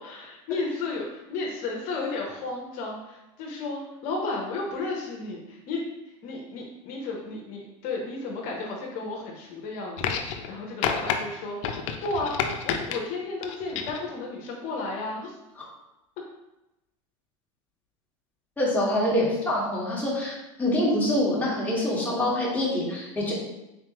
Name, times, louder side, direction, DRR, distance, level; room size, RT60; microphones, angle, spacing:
voice 1, 0.0-5.8 6.2-11.6 12.0-12.4 12.6-15.3, left 3 dB, 55° left, -1 dB, 0.9 m, -33 dB
sound 1, 10.0-10.5 10.8-11.2 11.6-13.0 13.4-14.1 15.1-15.2, left 7 dB, 70° left, 0.5 m, -29 dB
voice 2, 18.6-23.3, left 1 dB, 10° left, -6 dB, 1.5 m, -25 dB
3.8 x 3.3 x 3.0 m, 0.95 s
supercardioid pair, 105°, 17 cm